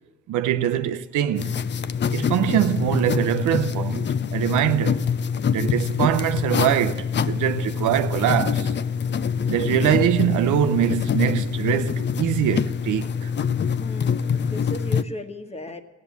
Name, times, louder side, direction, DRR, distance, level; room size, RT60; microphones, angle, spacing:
voice 1, 0.3-1.6 2.1-5.0 5.5-8.7 9.5-13.3, right 11 dB, 80° right, 0.7 m, -23 dB
sound 1, 1.4-15.0, left 7 dB, 35° left, 0.5 m, -25 dB
voice 2, 13.8-15.8, equal, 20° left, 1.4 m, -36 dB
15.5 x 8.6 x 9.5 m
cardioid pair, 90°, 30 cm